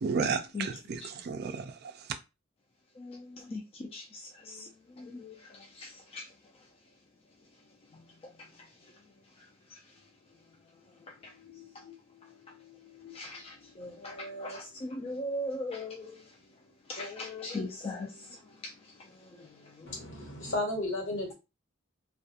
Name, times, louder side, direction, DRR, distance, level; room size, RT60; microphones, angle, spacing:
voice 1, 0.0-2.1, right 5 dB, 55° right, 0.4 m, -33 dB
voice 2, 5.0-5.3 5.8-6.2 11.6-11.7 13.0-16.2 16.9-18.1, left 1 dB, 30° left, 0.3 m, -38 dB
voice 3, 19.9-21.3, left 2 dB, 65° left, 1.0 m, -33 dB
2.4 x 2.1 x 2.7 m
head